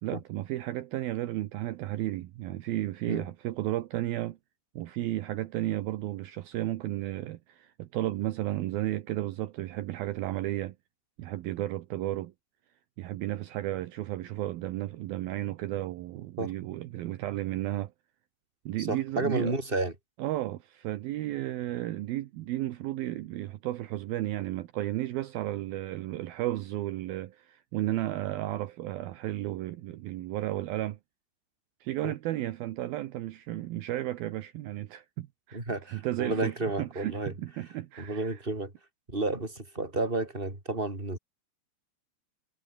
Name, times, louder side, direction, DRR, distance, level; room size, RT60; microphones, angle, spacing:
voice 1, 0.0-4.4 4.8-10.8 11.2-12.3 13.0-17.9 18.7-19.5 20.2-31.0 31.8-35.6 35.9-38.4, right 15 dB, 75° right, 2.2 m, -33 dB
voice 2, 18.8-19.9 32.0-32.1 35.5-37.3 37.6-37.7 38.0-38.7 39.1-41.2, right 2 dB, 10° right, 4.8 m, -31 dB
omnidirectional pair, 5.6 m